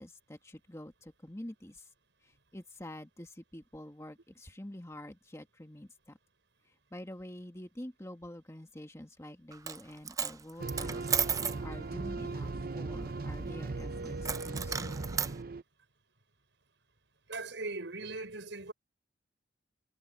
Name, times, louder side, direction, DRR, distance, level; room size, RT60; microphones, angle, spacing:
voice 1, 0.0-1.9 2.2-6.2 6.6-11.0 11.4-15.1, left 1 dB, 15° left, 1.6 m, -47 dB
Coin (dropping), 9.5-9.8 10.1-11.6 14.2-15.3, right 7 dB, 20° right, 0.5 m, -33 dB
sound 1, 10.6-15.6, right 3 dB, 50° right, 0.7 m, -38 dB
voice 2, 17.3-18.7, right 3 dB, 75° right, 5.6 m, -39 dB
head